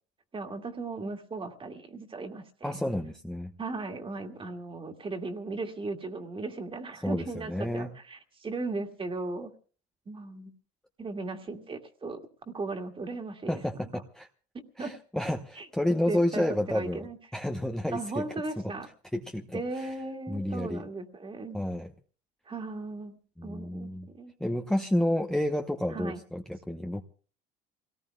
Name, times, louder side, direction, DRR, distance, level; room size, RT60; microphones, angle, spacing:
voice 1, 0.3-2.7 3.6-9.5 10.1-10.5 11.0-13.5 14.5-14.9 15.6-15.7 16.1-17.2 17.9-18.9 19.5-21.6 22.5-24.3 25.9-26.2, right 3 dB, 25° right, 4 dB, 2.2 m, -37 dB
voice 2, 2.6-3.5 7.0-7.9 13.5-14.3 14.8-18.2 19.1-19.9 20.3-20.8 21.5-21.9 23.4-24.1 24.4-27.0, left 1 dB, 5° left, 3 dB, 0.9 m, -30 dB
28.0 x 18.5 x 2.3 m, 0.41 s
cardioid pair, 115°, 21 cm